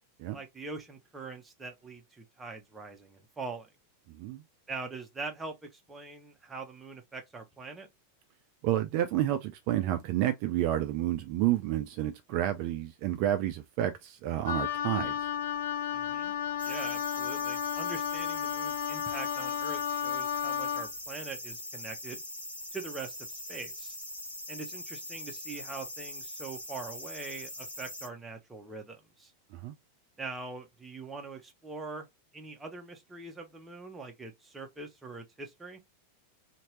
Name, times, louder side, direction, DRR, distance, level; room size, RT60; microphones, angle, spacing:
voice 1, 0.3-3.7 4.7-7.9 15.9-16.3 16.6-22.2 22.7-23.9 24.5-29.3 30.2-32.1 32.3-35.8, right 3 dB, 10° right, 0.8 m, -43 dB
voice 2, 8.6-15.3 29.5-29.7, right 13 dB, 45° right, 0.4 m, -30 dB
Wind instrument woodwind instrument, 14.5-20.9, left 9 dB, 60° left, 0.4 m, -33 dB
sound 1, 16.6-28.1, left 1 dB, 80° left, 1.5 m, -42 dB
2.9 x 2.8 x 3.0 m
figure-of-eight pair, 90°, 0 cm